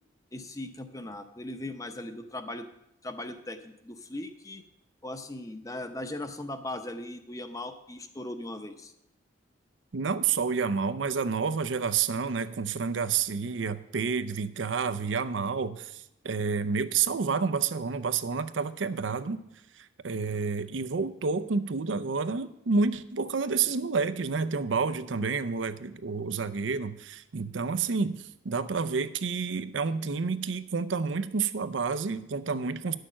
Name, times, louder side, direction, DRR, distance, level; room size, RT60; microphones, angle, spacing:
voice 1, 0.3-2.7 3.0-4.6 5.0-8.9, left 1 dB, 20° left, 8 dB, 0.7 m, -38 dB
voice 2, 9.9-19.4 19.8-33.0, right 5 dB, 80° right, 12 dB, 0.6 m, -29 dB
10.0 x 6.6 x 7.3 m, 0.80 s
head